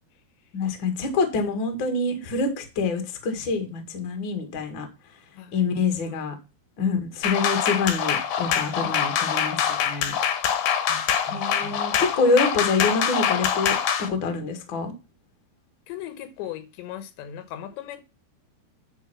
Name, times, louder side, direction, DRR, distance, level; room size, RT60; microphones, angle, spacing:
voice 1, 0.5-4.9 5.5-6.3 6.8-10.1 11.3-13.8 14.1-14.9, left 4 dB, 45° left, 1.6 m, -26 dB
voice 2, 5.3-6.2 8.8-9.0 10.9-11.8 15.9-18.0, left 10 dB, 85° left, 3.3 m, -39 dB
sound 1, 7.2-14.1, left 8 dB, 65° left, 2.5 m, -24 dB
10.0 x 4.5 x 5.9 m
omnidirectional pair, 5.0 m